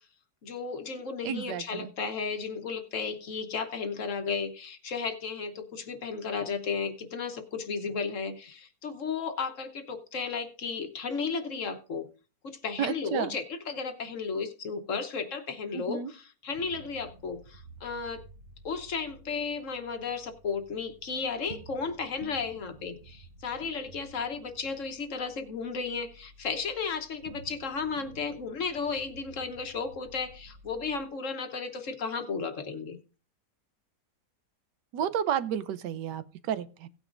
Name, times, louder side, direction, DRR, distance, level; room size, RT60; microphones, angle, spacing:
voice 1, 0.4-12.1 12.4-18.2 18.6-33.0, left 5 dB, 55° left, 1.2 m, -34 dB
voice 2, 1.2-1.9 12.8-13.4 15.7-16.1 34.9-36.9, right 9 dB, 90° right, 1.4 m, -31 dB
sound 1, 16.5-31.1, right 4 dB, 50° right, 0.6 m, -52 dB
17.0 x 9.0 x 2.5 m
omnidirectional pair, 1.8 m